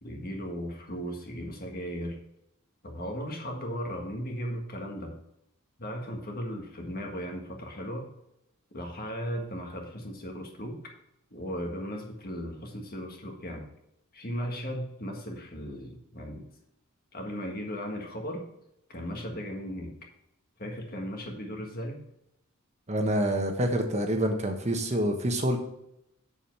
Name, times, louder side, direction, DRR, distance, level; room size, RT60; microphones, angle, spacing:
voice 1, 0.0-2.2 2.8-5.1 5.8-8.1 8.7-10.8 11.3-13.6 14.1-16.4 17.1-18.5 18.9-20.0 20.6-22.0, equal, 45° left, 2 dB, 1.7 m, -36 dB
voice 2, 22.9-25.6, right 1 dB, 35° right, 4 dB, 1.2 m, -27 dB
7.3 x 7.2 x 4.6 m, 0.81 s
head